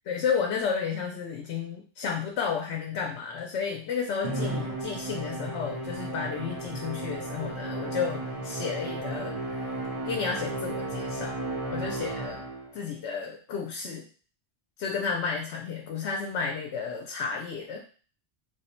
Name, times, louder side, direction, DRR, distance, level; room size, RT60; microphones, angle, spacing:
voice 1, 0.1-9.7 10.0-11.4 11.7-12.4 12.7-14.1 14.8-17.8, left 6 dB, 90° left, 1 dB, 0.9 m, -32 dB
Musical instrument, 4.2-12.8, right 2 dB, 40° right, 0.6 m, -34 dB
3.2 x 2.1 x 4.2 m, 0.41 s
omnidirectional pair, 1.1 m